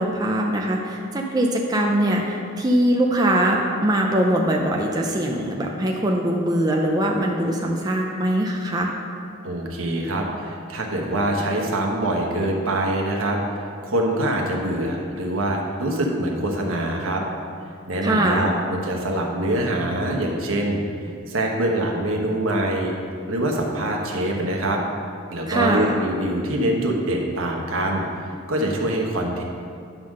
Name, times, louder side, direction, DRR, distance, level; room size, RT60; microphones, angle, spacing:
voice 1, 0.0-8.9 18.0-18.5 25.5-26.0, right 1 dB, 20° right, 0 dB, 0.5 m, -22 dB
voice 2, 9.4-13.4 13.8-17.2 17.9-20.8 21.3-22.9 23.3-24.8 25.3-28.1 28.5-29.4, right 1 dB, 75° right, 0 dB, 1.1 m, -24 dB
9.5 x 3.8 x 6.2 m, 2.3 s
head